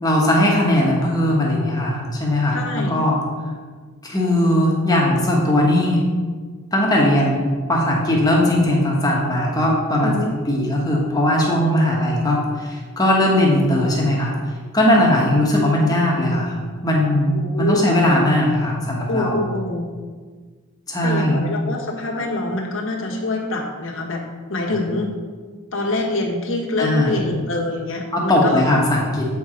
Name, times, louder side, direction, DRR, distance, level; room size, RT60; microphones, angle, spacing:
voice 1, 0.0-3.2 4.0-6.0 6.7-10.1 10.5-14.3 14.7-16.5 16.8-19.4 20.9-21.4 26.8-27.2 28.1-29.3, left 1 dB, 15° left, -3 dB, 1.2 m, -19 dB
voice 2, 2.5-3.0 10.0-10.3 14.9-15.0 17.3-17.9 19.1-19.9 21.0-24.2 24.5-25.1 25.7-28.6, left 2 dB, 60° left, 0 dB, 1.3 m, -25 dB
7.9 x 4.7 x 5.0 m, 1.5 s
head